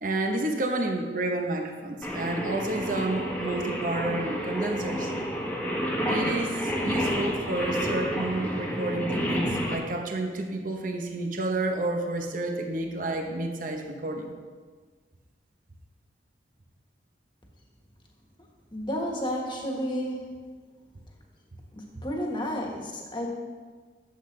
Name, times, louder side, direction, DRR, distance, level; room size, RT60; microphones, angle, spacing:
voice 1, 0.0-5.1 6.1-14.3, right 2 dB, 45° right, 3 dB, 0.9 m, -30 dB
Singing, 2.0-9.8, equal, 10° left, 1.1 m, -30 dB
voice 2, 18.7-20.4 21.7-23.3, equal, 25° left, 0 dB, 1.4 m, -31 dB
12.0 x 7.7 x 3.3 m, 1.5 s
head